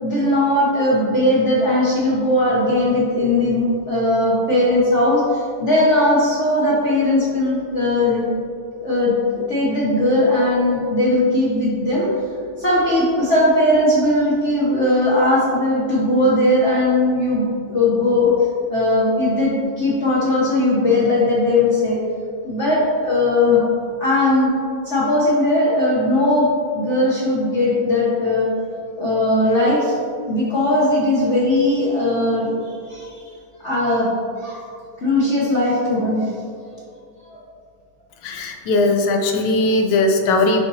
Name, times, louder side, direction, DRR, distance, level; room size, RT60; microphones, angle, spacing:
voice 1, 0.0-8.2 8.7-12.1 12.6-18.3 18.7-22.0 22.4-23.6 24.0-24.5 24.8-28.5 29.0-30.0 30.2-33.2 33.6-34.1 34.4-34.7 35.0-36.3 37.3-37.4, left 1 dB, 45° left, -7 dB, 1.0 m, -18 dB
voice 2, 38.2-40.6, left 2 dB, 70° left, 3 dB, 1.2 m, -18 dB
6.9 x 4.9 x 2.8 m, 2.5 s
omnidirectional pair, 2.2 m